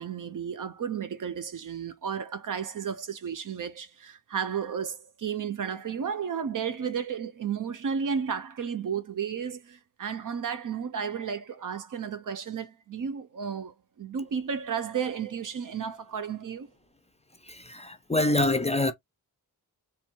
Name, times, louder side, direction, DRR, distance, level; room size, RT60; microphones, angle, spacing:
voice 1, 0.0-16.7, right 7 dB, 55° right, 0.7 m, -33 dB
voice 2, 17.7-18.9, left 2 dB, 20° left, 0.5 m, -25 dB
3.4 x 2.4 x 4.4 m
wide cardioid pair, 135°, 37 cm